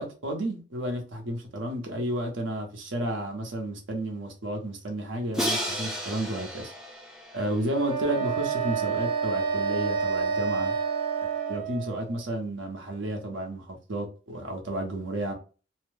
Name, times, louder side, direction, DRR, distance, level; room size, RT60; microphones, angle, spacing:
voice 1, 0.0-6.7 7.3-10.7 11.5-15.3, right 1 dB, 80° right, 0.9 m, -32 dB
Crash cymbal, 5.3-8.3, equal, 5° right, 0.6 m, -33 dB
sound 1, 7.7-11.7, right 7 dB, 25° right, 1.1 m, -31 dB
Wind instrument woodwind instrument, 8.1-12.2, right 4 dB, 50° right, 0.3 m, -31 dB
2.8 x 2.1 x 3.2 m
head